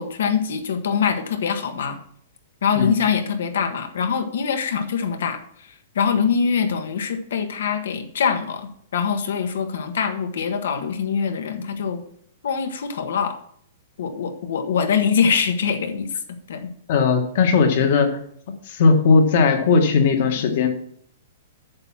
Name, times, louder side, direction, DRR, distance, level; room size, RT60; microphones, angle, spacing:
voice 1, 0.0-2.0 2.6-12.0 12.4-13.4 14.0-16.1 16.5-16.7, left 6 dB, 70° left, 7 dB, 1.6 m, -23 dB
voice 2, 16.9-18.2 18.6-20.7, left 4 dB, 45° left, 5 dB, 1.7 m, -18 dB
8.8 x 7.4 x 6.0 m, 0.64 s
hypercardioid pair, 175°, 0 cm